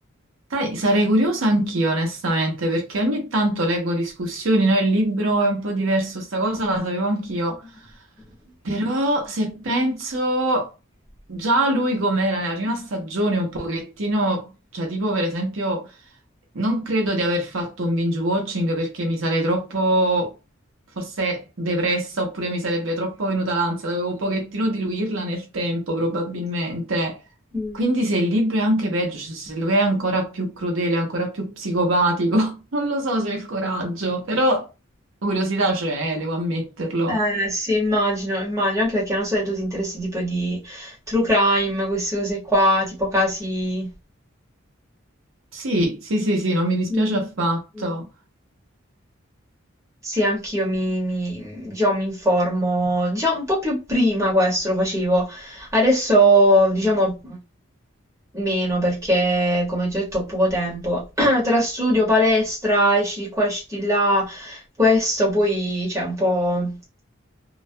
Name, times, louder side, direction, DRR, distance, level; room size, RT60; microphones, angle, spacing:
voice 1, 0.5-7.6 8.6-10.7 11.3-15.9 16.5-20.3 21.0-27.2 27.7-34.7 35.2-37.2 45.5-48.1, right 1 dB, 75° right, 0.7 m, -23 dB
voice 2, 27.5-27.9 37.1-43.9 46.9-47.2 47.8-47.9 50.0-57.4 58.3-66.7, equal, 15° right, 0.9 m, -21 dB
2.2 x 2.1 x 2.6 m
head